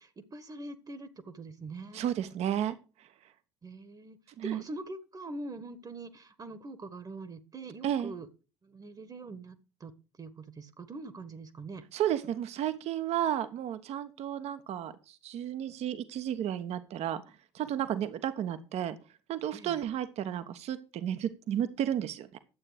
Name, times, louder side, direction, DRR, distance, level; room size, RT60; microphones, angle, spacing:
voice 1, 0.0-2.1 3.6-4.2 4.4-8.3 8.6-9.9 10.2-11.8 19.5-19.8, right 2 dB, 25° right, 13 dB, 1.5 m, -43 dB
voice 2, 1.9-2.8 4.4-4.6 7.8-8.1 11.9-17.2 17.5-18.9 19.3-22.4, right 10 dB, 50° right, 12 dB, 1.2 m, -32 dB
12.0 x 8.6 x 5.1 m, 0.34 s
figure-of-eight pair, 55°, 14 cm